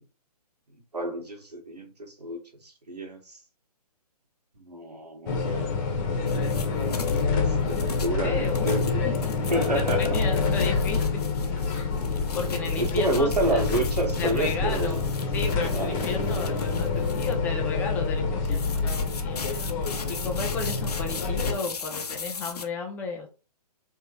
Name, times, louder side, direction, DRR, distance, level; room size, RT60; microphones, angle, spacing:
voice 1, 0.9-3.4 4.6-6.1 7.3-9.1 9.5-10.2 12.8-15.0 15.7-16.1, right 1 dB, 90° right, 1.4 m, -29 dB
sound 1, 5.3-21.6, left 4 dB, 30° left, 1.0 m, -27 dB
sound 2, 6.3-7.3 7.7-17.3 18.4-22.6, left 5 dB, 75° left, 0.8 m, -38 dB
voice 2, 8.2-8.7 9.0-9.3 9.7-11.2 11.9-12.0 12.3-13.6 14.2-19.4 20.1-23.3, left 4 dB, 10° left, 0.3 m, -34 dB
3.7 x 3.0 x 2.9 m
figure-of-eight pair, 135°, 20 cm